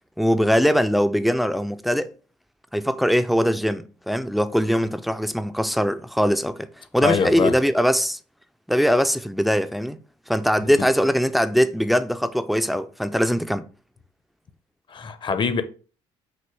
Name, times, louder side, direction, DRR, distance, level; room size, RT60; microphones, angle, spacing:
voice 1, 0.2-2.1 2.7-6.7 6.9-8.2 8.7-10.0 10.3-13.7, equal, ahead, 0.4 m, -21 dB
voice 2, 7.0-7.5 10.8-10.9 14.9-15.6, left 6 dB, 40° left, 0.7 m, -23 dB
5.9 x 2.6 x 3.2 m
supercardioid pair, 75°, 13 cm